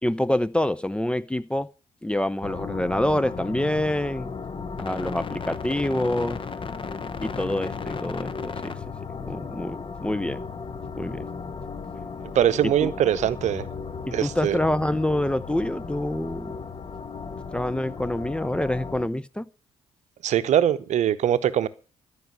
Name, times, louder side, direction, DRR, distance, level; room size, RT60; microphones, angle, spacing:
voice 1, 0.0-1.7 2.0-4.3 4.8-6.4 7.2-8.7 9.2-10.4 10.9-11.2 12.8-12.9 14.1-16.6 17.5-19.4, left 1 dB, 5° left, 0.6 m, -26 dB
sound 1, 2.4-19.1, left 5 dB, 35° left, 1.1 m, -35 dB
voice 2, 12.3-13.6 14.1-14.6 20.2-21.7, right 10 dB, 55° right, 0.8 m, -22 dB
13.0 x 5.6 x 9.4 m
figure-of-eight pair, 40°, 14 cm